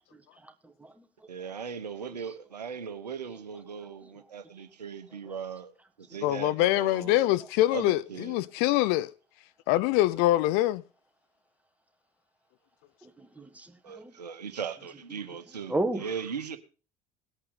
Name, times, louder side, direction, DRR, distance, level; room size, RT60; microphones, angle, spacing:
voice 1, 0.4-1.1 13.0-14.1 15.7-16.1, right 2 dB, 5° right, 1.5 m, -34 dB
voice 2, 1.3-5.7 6.0-7.3 7.7-8.4 13.8-16.6, right 6 dB, 80° right, 1.0 m, -38 dB
voice 3, 6.2-9.1 9.7-10.8, left 15 dB, 50° left, 0.5 m, -24 dB
18.5 x 8.5 x 3.8 m
figure-of-eight pair, 65°, 21 cm